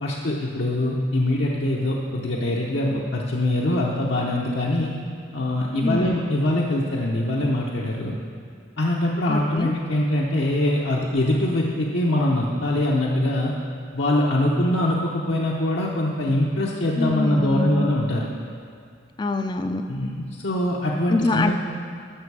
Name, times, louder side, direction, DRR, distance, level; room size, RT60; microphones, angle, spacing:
voice 1, 0.0-4.9 5.3-8.2 8.8-13.5 13.9-18.3 19.9-21.5, left 1 dB, 75° left, -4 dB, 0.8 m, -23 dB
voice 2, 5.8-6.2 9.3-9.7 17.0-17.9 19.2-19.8 21.1-21.5, left 3 dB, 25° left, 6 dB, 0.3 m, -24 dB
12.5 x 6.6 x 4.8 m, 2.3 s
head